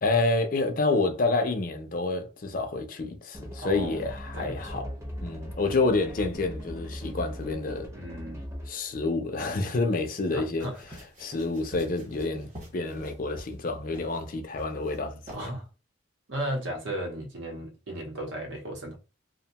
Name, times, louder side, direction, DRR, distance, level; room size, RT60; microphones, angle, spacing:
voice 1, 0.0-4.9 5.2-7.9 8.7-10.7 11.2-15.5, left 3 dB, 45° left, 0.4 m, -28 dB
sound 1, 3.3-8.9, equal, 15° right, 0.6 m, -39 dB
voice 2, 3.6-4.0 4.3-4.9 7.9-8.4 10.3-10.8 15.3-15.7 16.3-19.0, right 1 dB, 75° right, 0.8 m, -35 dB
sound 2, 10.6-13.6 13.9-14.2 14.6-15.0 15.3-15.4, equal, 40° right, 1.0 m, -47 dB
2.6 x 2.1 x 2.8 m
head